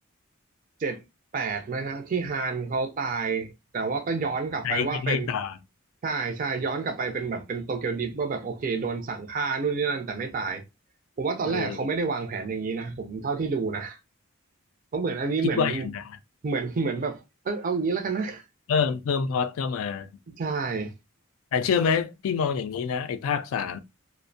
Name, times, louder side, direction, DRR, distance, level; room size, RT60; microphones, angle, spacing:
voice 1, 1.3-5.3 6.0-10.6 11.2-14.0 14.9-15.9 16.4-18.4 20.4-20.9, right 4 dB, 40° right, 0.4 m, -29 dB
voice 2, 4.6-5.6 11.4-11.8 15.6-16.2 18.7-20.1 21.5-23.8, left 6 dB, 85° left, 0.3 m, -27 dB
2.4 x 2.0 x 2.5 m
head